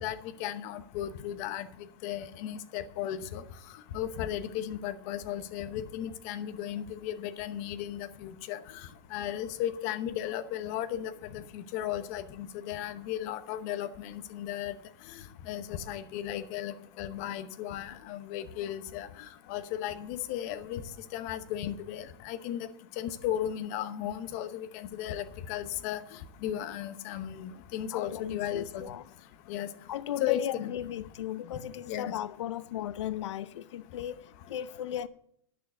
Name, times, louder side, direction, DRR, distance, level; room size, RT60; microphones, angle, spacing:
voice 1, 0.0-1.7 2.0-3.4 3.9-14.7 15.5-20.8 21.1-22.7 23.0-28.8 29.5-29.7 30.2-30.7 31.9-32.1, left 11 dB, 35° left, 0.9 m, -35 dB
voice 2, 27.9-29.0 29.9-35.1, left 12 dB, 85° left, 0.5 m, -36 dB
10.0 x 6.6 x 6.8 m
supercardioid pair, 175°, 15 cm